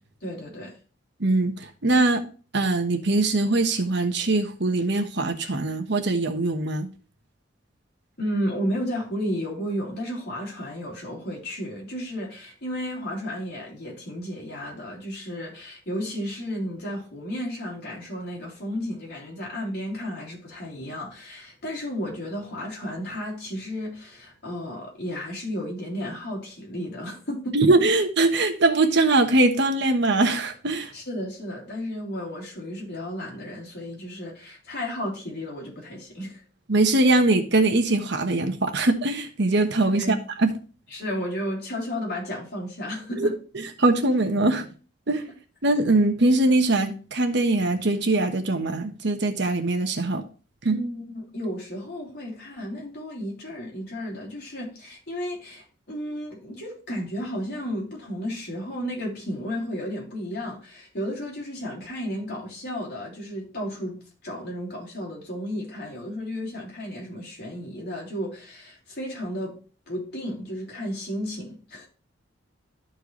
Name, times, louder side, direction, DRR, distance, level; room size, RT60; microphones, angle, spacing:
voice 1, 0.2-0.8 8.2-27.7 30.9-36.4 39.9-40.2 40.9-43.4 50.7-69.6 69.9-71.9, equal, 55° left, 3.8 m, -33 dB
voice 2, 1.2-2.2 2.5-6.9 27.5-30.9 36.7-40.5 43.2-43.3 43.5-44.7 45.1-45.3 45.6-50.2 50.6-50.8, right 2 dB, 65° right, 1.2 m, -22 dB
13.5 x 4.5 x 3.2 m
head